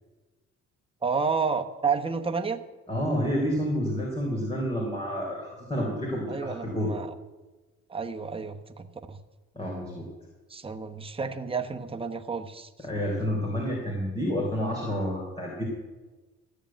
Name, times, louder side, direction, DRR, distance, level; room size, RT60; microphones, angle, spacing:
voice 1, 1.0-2.6 6.3-7.1 7.9-9.2 10.5-12.7, right 5 dB, 20° right, 5 dB, 1.0 m, -30 dB
voice 2, 2.9-6.9 9.5-10.1 12.8-15.6, equal, 20° left, -2 dB, 3.8 m, -29 dB
14.0 x 6.8 x 8.9 m, 1.2 s
cardioid pair, 90°, 30 cm